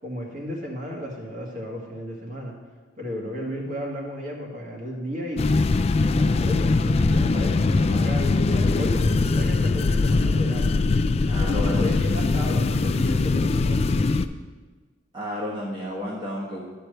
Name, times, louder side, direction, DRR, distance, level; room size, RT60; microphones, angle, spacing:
voice 1, 0.0-2.6 3.0-5.5 6.0-10.7 11.4-13.8, equal, 40° right, -1 dB, 1.9 m, -34 dB
sound 1, 5.4-14.3, left 3 dB, 30° left, 0.3 m, -21 dB
voice 2, 11.3-11.9 15.1-16.6, equal, 25° right, -6 dB, 1.4 m, -31 dB
12.5 x 4.5 x 6.7 m, 1.4 s
head